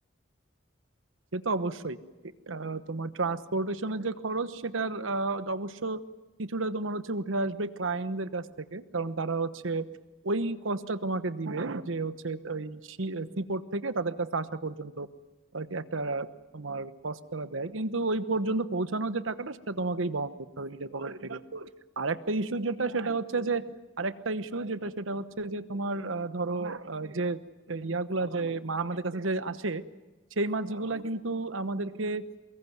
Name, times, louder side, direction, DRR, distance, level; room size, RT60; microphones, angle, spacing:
voice 1, 1.3-2.0 2.5-6.0 6.4-9.8 10.2-15.1 15.5-16.3 16.5-21.7 22.0-23.6 24.0-27.4 27.7-29.8 30.4-32.2, right 3 dB, 90° right, 12 dB, 1.1 m, -31 dB
24.0 x 21.5 x 9.4 m, 1.1 s
head